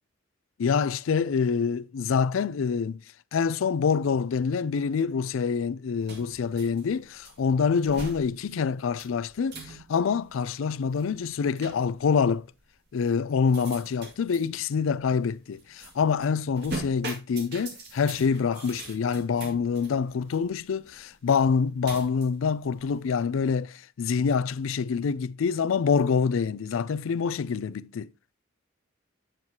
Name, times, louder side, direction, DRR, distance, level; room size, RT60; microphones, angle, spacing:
voice 1, 0.6-3.0 3.3-12.4 12.9-28.1, left 6 dB, 75° left, 0.4 m, -26 dB
sound 1, 6.0-23.3, right 2 dB, 55° right, 2.1 m, -44 dB
8.9 x 8.0 x 2.8 m
head